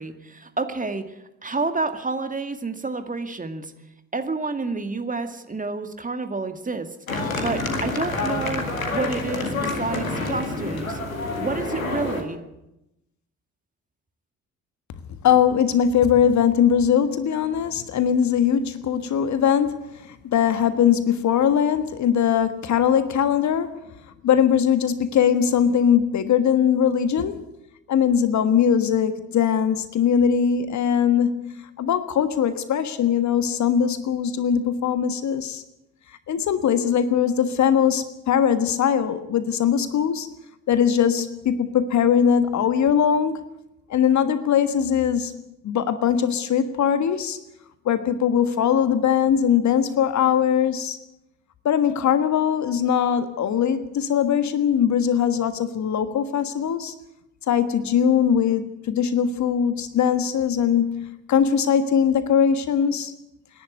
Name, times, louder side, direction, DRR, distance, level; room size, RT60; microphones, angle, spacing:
voice 1, 0.0-3.7 4.1-11.0 11.4-12.4, right 3 dB, 20° right, 8 dB, 2.2 m, -29 dB
sound 1, 7.1-12.2, left 2 dB, 85° left, 2.1 m, -27 dB
voice 2, 15.2-23.8 24.2-27.5 27.9-35.6 36.3-40.3 40.7-43.4 43.9-47.4 47.8-51.0 51.6-56.9 57.5-63.1, left 8 dB, 45° left, 11 dB, 1.5 m, -21 dB
26.5 x 11.0 x 9.5 m, 0.89 s
figure-of-eight pair, 50°, 40 cm